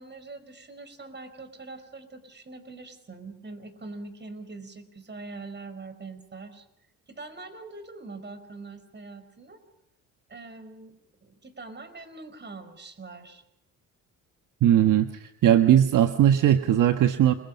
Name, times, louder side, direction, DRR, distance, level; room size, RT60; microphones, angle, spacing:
voice 1, 0.0-6.6 7.1-9.6 10.3-10.9 11.2-13.4, right 3 dB, 30° right, 11 dB, 5.0 m, -43 dB
voice 2, 14.6-17.3, right 11 dB, 65° right, 7 dB, 1.4 m, -19 dB
29.5 x 22.5 x 5.3 m, 0.79 s
supercardioid pair, 75°, 33 cm